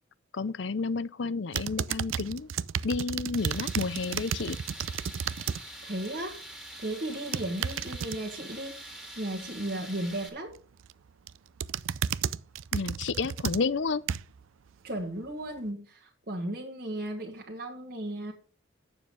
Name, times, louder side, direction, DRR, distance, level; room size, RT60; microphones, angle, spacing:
voice 1, 0.3-2.5 2.8-4.6 12.7-14.0, left 4 dB, 65° left, 0.6 m, -31 dB
sound 1, 1.5-5.6 6.0-6.3 7.1-8.2 10.5-10.9 11.3-14.4 15.0-15.1, right 8 dB, 85° right, 0.4 m, -33 dB
Tools, 3.4-10.3, right 1 dB, 5° right, 1.7 m, -45 dB
voice 2, 5.5-6.4 6.8-10.6 14.8-18.3, right 1 dB, 45° right, 1.6 m, -35 dB
9.3 x 7.2 x 5.3 m
head